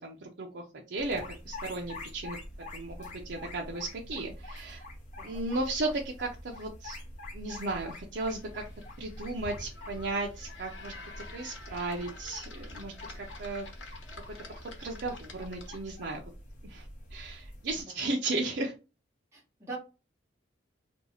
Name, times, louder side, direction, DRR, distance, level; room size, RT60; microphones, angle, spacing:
voice 1, 0.0-2.4 2.7-4.8 5.2-7.0 7.3-8.6 9.0-10.9 11.3-13.7 14.6-16.2 16.6-18.7, right 2 dB, 65° right, 0 dB, 0.5 m, -35 dB
sound 1, 1.0-17.8, left 1 dB, 40° left, 0.8 m, -45 dB
sound 2, 8.2-16.0, left 3 dB, 85° left, 0.9 m, -49 dB
voice 2, 19.3-19.8, right 4 dB, 15° right, -4 dB, 1.3 m, -43 dB
2.7 x 2.3 x 4.1 m, 0.30 s
head